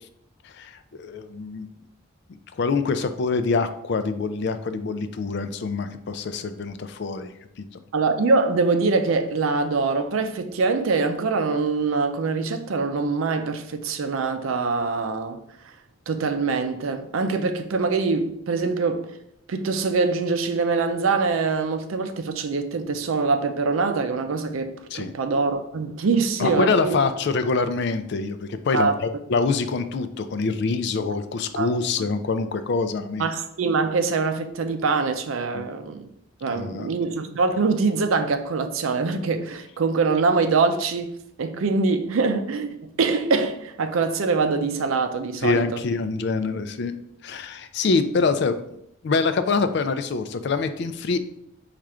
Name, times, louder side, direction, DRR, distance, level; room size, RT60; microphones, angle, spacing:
voice 1, 0.4-1.7 2.6-7.3 7.6-7.7 24.9-25.1 26.4-33.3 35.5-35.7 36.5-36.9 45.4-48.6 49.0-51.2, left 4 dB, 55° left, 0.3 m, -25 dB
voice 2, 7.9-15.4 16.1-19.1 19.5-27.0 28.7-29.0 31.1-31.2 31.6-31.7 32.0-32.1 33.2-36.1 36.4-41.1 41.4-45.8, right 4 dB, 80° right, 0.5 m, -24 dB
4.3 x 2.5 x 4.8 m
head